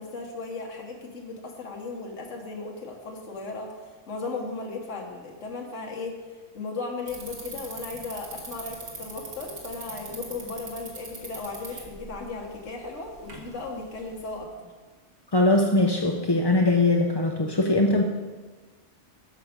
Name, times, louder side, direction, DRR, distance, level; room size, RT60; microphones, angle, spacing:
voice 1, 0.0-3.7 4.1-6.2 6.5-14.7, left 3 dB, 70° left, 0 dB, 1.6 m, -36 dB
Bicycle, 7.1-14.4, right 2 dB, 75° right, 2.2 m, -43 dB
voice 2, 15.3-18.0, left 2 dB, 30° left, 2 dB, 0.5 m, -21 dB
14.0 x 6.0 x 5.1 m, 1.4 s
omnidirectional pair, 1.3 m